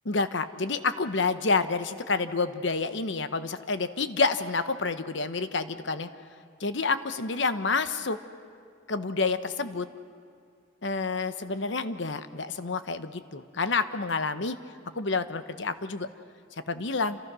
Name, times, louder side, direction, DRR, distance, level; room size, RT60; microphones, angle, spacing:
voice 1, 0.1-6.1 6.6-8.2 8.9-9.9 10.8-14.6 14.9-16.1 16.7-17.2, left 4 dB, 65° left, 11 dB, 1.0 m, -28 dB
28.5 x 26.0 x 6.3 m, 2.3 s
head